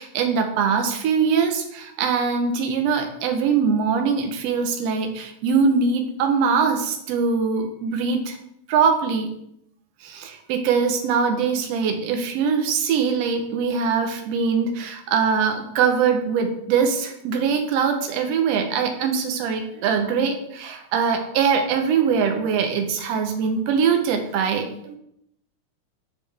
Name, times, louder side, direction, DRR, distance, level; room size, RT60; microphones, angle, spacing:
voice 1, 0.0-8.4 8.7-9.3 10.0-25.0, right 6 dB, 70° right, 4 dB, 1.7 m, -22 dB
6.3 x 5.4 x 3.3 m, 0.75 s
omnidirectional pair, 3.6 m